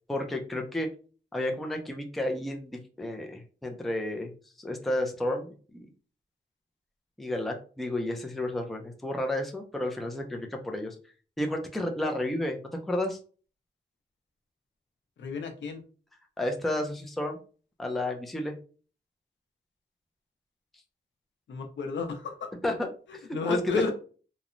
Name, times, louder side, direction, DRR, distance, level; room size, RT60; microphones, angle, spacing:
voice 1, 0.1-0.9 1.3-4.3 4.6-5.5 5.8-5.9 7.2-11.0 11.4-12.6 12.9-13.2 16.4-17.4 17.8-18.6 22.6-23.6, left 1 dB, ahead, 2 dB, 0.3 m, -31 dB
voice 2, 15.2-15.8 21.5-22.5 23.1-23.9, left 4 dB, 85° left, 4 dB, 0.6 m, -32 dB
2.9 x 2.0 x 2.4 m, 0.39 s
wide cardioid pair, 170°, 19 cm